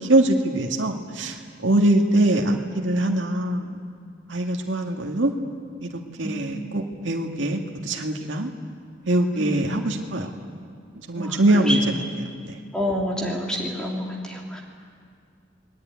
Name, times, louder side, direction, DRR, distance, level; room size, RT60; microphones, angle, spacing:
voice 1, 0.1-1.4 1.6-3.8 4.3-5.3 5.8-5.9 6.2-8.5 9.1-10.3 11.1-11.8 12.5-12.6, right 1 dB, 75° right, 1 dB, 2.1 m, -22 dB
voice 2, 6.2-6.6 6.9-7.0 9.3-9.8 11.1-11.8 12.7-14.6, equal, 5° left, -2 dB, 3.2 m, -28 dB
29.5 x 21.0 x 9.5 m, 2.2 s
head